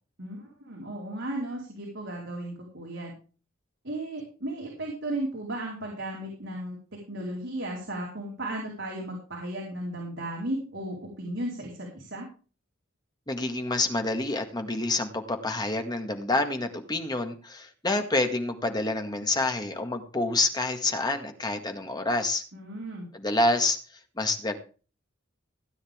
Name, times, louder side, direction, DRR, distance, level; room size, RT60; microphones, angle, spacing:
voice 1, 0.2-3.1 3.8-6.8 7.1-12.3 22.5-23.1, right 1 dB, 65° right, -2 dB, 4.5 m, -35 dB
voice 2, 13.3-22.4 23.1-23.8 24.2-24.5, left 2 dB, 20° left, 5 dB, 1.8 m, -27 dB
16.5 x 9.6 x 3.7 m, 0.36 s
head